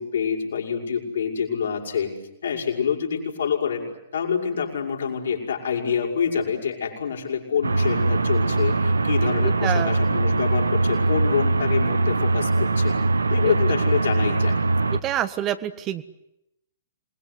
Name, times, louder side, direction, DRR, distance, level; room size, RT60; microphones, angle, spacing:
voice 1, 0.0-2.1 2.4-3.8 4.1-12.9 13.3-14.6, left 7 dB, 65° left, 1 dB, 6.5 m, -26 dB
sound 1, 7.6-15.0, right 3 dB, 75° right, 1.3 m, -22 dB
voice 2, 9.4-10.0 13.4-13.5 15.0-16.0, right 11 dB, 25° right, 11 dB, 1.4 m, -27 dB
27.0 x 21.5 x 9.7 m, 0.83 s
figure-of-eight pair, 110°, 0 cm